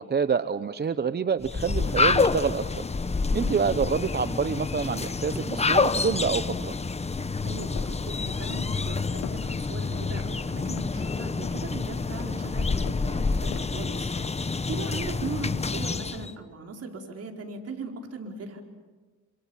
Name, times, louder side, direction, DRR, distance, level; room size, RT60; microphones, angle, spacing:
voice 1, 0.0-2.8 3.3-6.7, right 6 dB, 35° right, 12 dB, 0.9 m, -27 dB
sound 1, 1.4-16.3, left 4 dB, 20° left, 1.1 m, -28 dB
sound 2, 2.7-5.0 5.4-9.3, right 1 dB, 5° right, 2.1 m, -50 dB
voice 2, 3.3-3.6 7.4-18.6, right 3 dB, 55° right, 2 dB, 4.8 m, -38 dB
sound 3, 7.8-8.0 8.5-8.9 9.2-9.6 10.0-10.2 10.7-11.0 11.4-11.7 12.1-12.4 12.8-13.1 13.5-13.8 14.2-14.4, left 14 dB, 85° left, 0.9 m, -43 dB
28.0 x 26.5 x 7.3 m, 1.3 s
cardioid pair, 90°, 30 cm